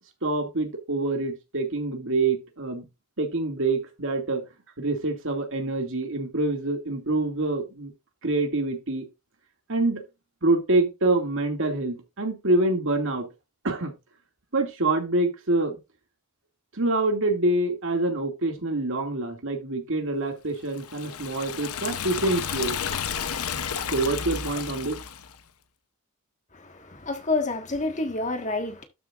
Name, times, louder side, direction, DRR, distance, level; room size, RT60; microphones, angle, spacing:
voice 1, 0.2-2.8 3.2-4.4 4.8-7.9 8.2-9.1 9.7-10.0 10.4-13.3 13.6-13.9 14.5-15.8 16.7-22.7 23.9-25.0, right 2 dB, 60° right, 2.4 m, -26 dB
Liquid, 20.7-25.3, left 7 dB, 80° left, 0.9 m, -32 dB
voice 2, 26.5-28.8, left 2 dB, 35° left, 1.6 m, -28 dB
12.5 x 6.7 x 2.5 m
head